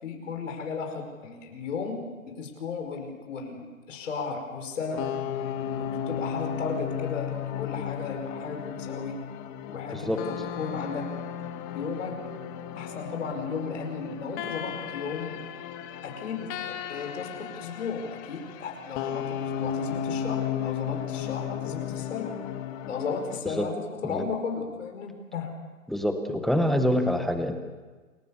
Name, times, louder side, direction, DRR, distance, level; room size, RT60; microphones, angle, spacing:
voice 1, 0.0-5.1 5.8-9.2 9.7-11.1 11.7-12.2 12.8-15.3 16.0-22.3 22.9-25.5, left 5 dB, 65° left, 3 dB, 5.3 m, -35 dB
sound 1, 4.9-23.4, left 8 dB, 20° left, 1.2 m, -34 dB
voice 2, 25.9-27.5, equal, ahead, 6 dB, 0.6 m, -25 dB
28.5 x 15.5 x 7.1 m, 1.4 s
hypercardioid pair, 150°, 40 cm